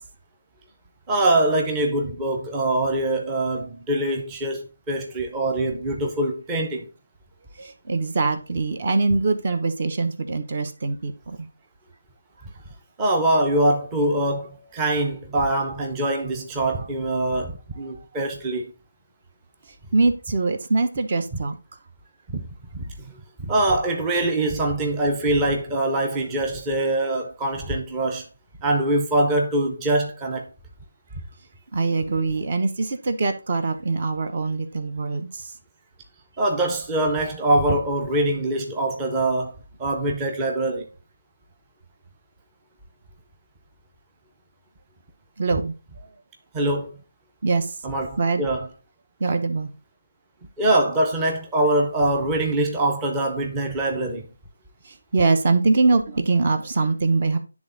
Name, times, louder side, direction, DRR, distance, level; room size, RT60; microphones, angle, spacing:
voice 1, 1.1-6.9 13.0-18.7 22.3-22.4 22.7-28.3 28.6-30.5 36.4-39.5 39.8-40.9 46.5-46.9 47.8-48.7 50.6-54.3, right 1 dB, 15° right, 0.8 m, -23 dB
voice 2, 7.5-11.5 19.9-21.6 31.7-35.5 45.4-46.1 47.4-47.8 48.2-48.4 49.2-49.7 54.8-57.4, right 3 dB, 40° right, 1.0 m, -23 dB
10.0 x 3.6 x 3.9 m
figure-of-eight pair, 165°, 0 cm